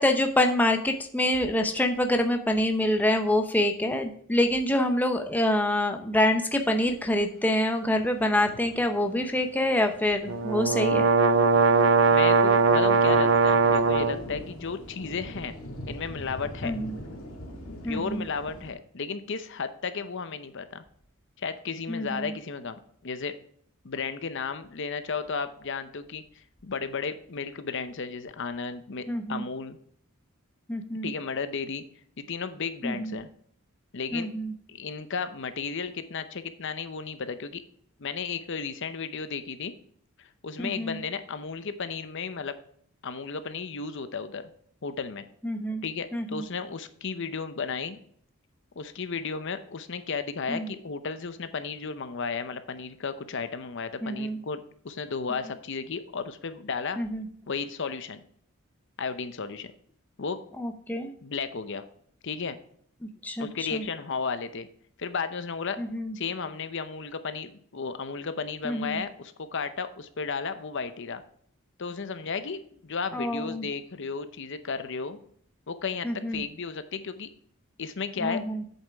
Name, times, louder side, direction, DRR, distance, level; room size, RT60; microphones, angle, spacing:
voice 1, 0.0-11.1 16.6-17.0 17.8-18.3 21.9-22.4 29.1-29.5 30.7-31.1 32.8-33.2 34.1-34.5 40.6-41.0 45.4-45.8 46.1-46.5 50.5-50.7 54.0-54.4 57.0-57.3 60.6-61.1 63.0-63.9 65.8-66.2 68.6-69.0 73.1-73.7 76.0-76.4 78.2-78.6, left 1 dB, 10° left, 4 dB, 0.7 m, -26 dB
sound 1, 7.9-18.7, equal, 85° left, 2.0 m, -44 dB
sound 2, 10.3-14.2, right 4 dB, 60° right, 0.6 m, -20 dB
voice 2, 12.1-15.6 15.9-16.8 17.8-20.8 21.4-23.4 23.8-29.8 31.0-31.8 32.2-33.3 33.9-34.3 34.7-37.6 38.0-39.7 40.2-42.6 43.0-44.5 44.8-45.3 45.8-48.0 48.8-57.0 57.5-58.2 59.0-59.7 60.2-60.4 61.2-61.8 62.2-62.6 63.4-64.7 65.0-65.8 66.1-71.2 71.8-75.2 75.7-77.3 77.8-78.4, left 5 dB, 60° left, 11 dB, 0.7 m, -34 dB
8.3 x 7.1 x 3.5 m, 0.62 s
head